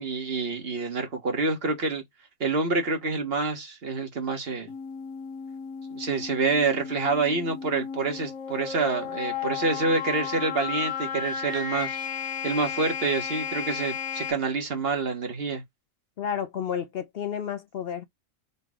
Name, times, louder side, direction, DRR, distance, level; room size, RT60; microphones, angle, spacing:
voice 1, 0.0-2.0 2.4-4.7 5.9-12.0 12.4-15.6, right 3 dB, 45° right, 1.5 m, -27 dB
sound 1, 4.7-14.3, left 7 dB, 80° left, 1.4 m, -34 dB
voice 2, 16.2-18.0, left 8 dB, 60° left, 0.6 m, -31 dB
4.1 x 3.1 x 3.6 m
omnidirectional pair, 1.4 m